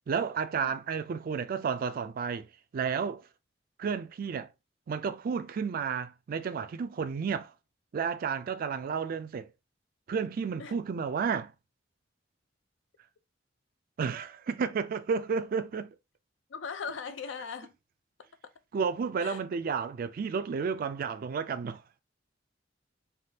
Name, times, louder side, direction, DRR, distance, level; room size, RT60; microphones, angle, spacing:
voice 1, 0.1-2.5 2.7-3.2 3.8-4.5 4.9-7.5 7.9-9.5 10.1-11.5 14.0-15.9 18.7-21.8, right 6 dB, 50° right, 0.3 m, -32 dB
voice 2, 16.5-17.7 19.2-19.4, left 6 dB, 80° left, 0.5 m, -39 dB
3.4 x 2.3 x 2.7 m
head